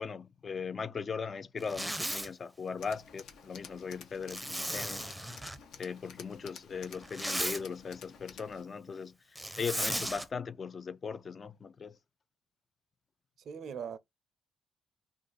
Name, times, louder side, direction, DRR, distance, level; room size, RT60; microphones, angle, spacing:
voice 1, 0.0-5.1 5.8-9.1 9.6-12.0, left 5 dB, 45° left, 0.4 m, -38 dB
Zipper (clothing), 1.6-2.3 4.3-5.6 6.9-7.6 9.4-10.2, right 1 dB, 5° right, 0.5 m, -36 dB
Tools, 2.8-8.6, left 7 dB, 75° left, 0.7 m, -52 dB
voice 2, 13.4-14.0, right 7 dB, 65° right, 0.5 m, -40 dB
2.5 x 2.3 x 3.8 m
supercardioid pair, 70°, 0 cm